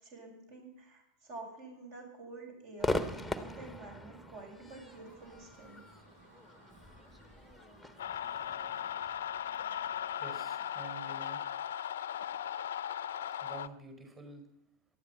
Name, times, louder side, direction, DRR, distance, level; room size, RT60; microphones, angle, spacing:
voice 1, 0.0-5.8, right 3 dB, 50° right, 2 dB, 6.5 m, -49 dB
Crowd / Fireworks, 2.8-10.1, left 2 dB, ahead, 1.3 m, -40 dB
sound 1, 4.8-11.4, right 1 dB, 75° right, 3.8 m, -61 dB
sound 2, 8.0-13.7, left 10 dB, 60° left, 0.7 m, -37 dB
voice 2, 9.8-11.4 13.1-14.4, right 3 dB, 25° right, 6 dB, 5.0 m, -49 dB
19.0 x 13.5 x 5.6 m, 0.78 s
figure-of-eight pair, 90°, 0 cm